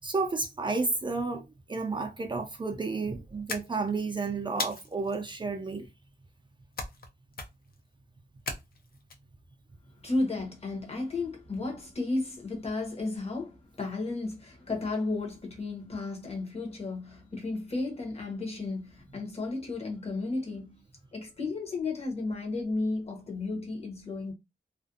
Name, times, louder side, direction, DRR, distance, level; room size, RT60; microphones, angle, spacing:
voice 1, 0.0-5.9, right 3 dB, 30° right, 0.4 m, -31 dB
sound 1, 3.5-4.1 4.6-5.2 6.8-7.1 7.3-7.8 8.5-9.1, left 3 dB, 60° left, 0.5 m, -37 dB
voice 2, 10.0-20.8 21.1-24.3, left 3 dB, 35° left, 0.8 m, -33 dB
2.4 x 2.1 x 2.5 m
wide cardioid pair, 140°, 17 cm